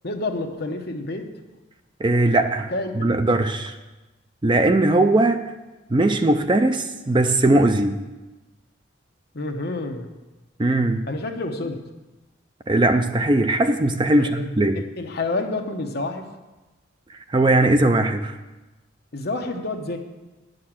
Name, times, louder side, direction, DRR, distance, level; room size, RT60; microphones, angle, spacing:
voice 1, 0.0-1.3 2.7-3.2 9.3-10.1 11.1-11.9 14.1-14.4 14.7-16.3 19.1-20.0, left 2 dB, 50° left, 4 dB, 1.0 m, -29 dB
voice 2, 2.0-3.7 4.4-5.5 5.9-8.0 10.6-11.1 12.7-14.8 17.3-18.3, right 2 dB, 25° right, 8 dB, 0.4 m, -19 dB
9.7 x 6.6 x 7.5 m, 1.1 s
head